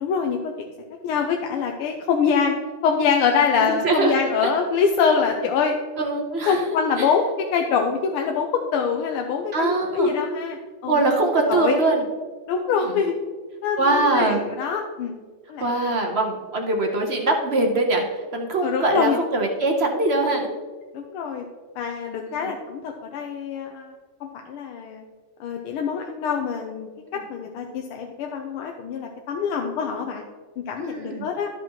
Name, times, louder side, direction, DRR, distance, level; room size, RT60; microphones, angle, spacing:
voice 1, 0.0-0.5 1.0-2.5 2.8-5.8 6.5-7.2 7.5-11.0 11.5-11.7 12.5-13.1 13.6-15.1 15.5-16.0 18.6-19.2 20.9-21.4 21.8-23.9 24.2-25.0 25.4-30.2 30.7-31.5, left 6 dB, 80° left, 3 dB, 1.6 m, -24 dB
voice 2, 3.6-4.5 6.0-6.6 7.0-7.1 9.5-10.1 10.9-12.0 12.7-12.9 13.8-14.4 15.6-20.5 22.3-22.5 27.1-27.2 30.8-31.3, right 2 dB, 50° right, 2 dB, 0.7 m, -23 dB
12.5 x 5.9 x 3.0 m, 1.5 s
omnidirectional pair, 2.4 m